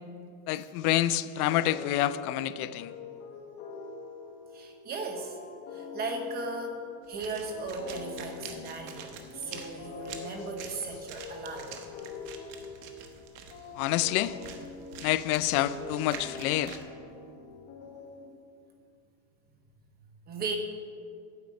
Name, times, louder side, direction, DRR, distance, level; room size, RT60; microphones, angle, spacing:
voice 1, 0.5-2.9 13.8-14.4 15.0-16.8, left 13 dB, 75° left, 15 dB, 0.5 m, -28 dB
sound 1, 1.4-18.6, left 5 dB, 45° left, 1.6 m, -44 dB
voice 2, 4.5-5.4 5.7-11.8 20.3-20.6, right 3 dB, 20° right, 3 dB, 0.8 m, -37 dB
sound 2, 7.0-16.8, right 7 dB, 55° right, 1.1 m, -47 dB
9.8 x 7.8 x 4.1 m, 2.3 s
supercardioid pair, 160°, 46 cm